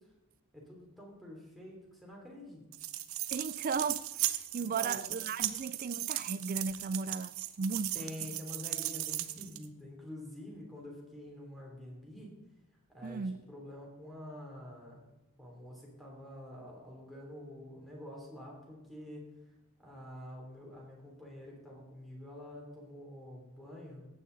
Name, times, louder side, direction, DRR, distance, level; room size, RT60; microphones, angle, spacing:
voice 1, 0.5-2.6 4.7-5.1 5.4-5.7 7.9-12.3 12.9-15.0 15.4-19.2 19.8-24.1, left 1 dB, ahead, 3.2 m, -47 dB
sound 1, 2.7-9.7, right 14 dB, 65° right, 0.7 m, -37 dB
voice 2, 3.3-8.3 13.0-13.4, right 5 dB, 40° right, 0.4 m, -36 dB
15.0 x 9.2 x 4.0 m
head